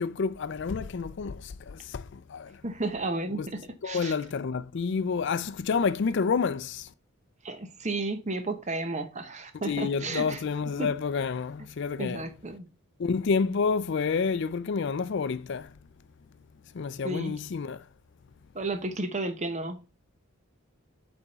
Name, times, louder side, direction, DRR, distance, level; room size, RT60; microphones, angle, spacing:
voice 1, 0.0-2.6 3.3-3.5 3.8-6.9 9.6-12.2 13.0-15.7 16.7-17.8, left 5 dB, 55° left, 0.4 m, -29 dB
voice 2, 2.6-4.1 7.4-10.4 10.8-10.9 12.0-12.7 17.0-17.4 18.5-19.8, right 2 dB, 35° right, 0.8 m, -33 dB
8.5 x 3.6 x 4.0 m
head